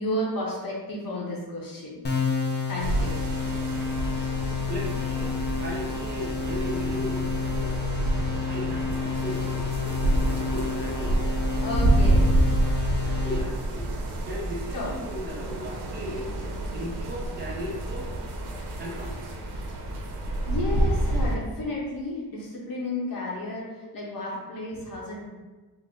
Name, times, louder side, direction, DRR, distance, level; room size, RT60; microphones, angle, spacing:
voice 1, 0.0-2.0 2.7-3.2 11.6-12.4 14.7-14.9 20.5-25.3, left 1 dB, 60° left, -4 dB, 0.8 m, -32 dB
sound 1, 2.0-13.4, left 5 dB, 30° left, 0.4 m, -30 dB
sound 2, 2.8-21.4, right 1 dB, 75° right, 0.6 m, -28 dB
voice 2, 4.7-11.2 12.6-13.9 14.2-16.3 16.7-18.1 18.8-19.2, equal, 25° right, -4 dB, 0.7 m, -37 dB
3.8 x 2.0 x 3.3 m, 1.3 s
wide cardioid pair, 150°, 39 cm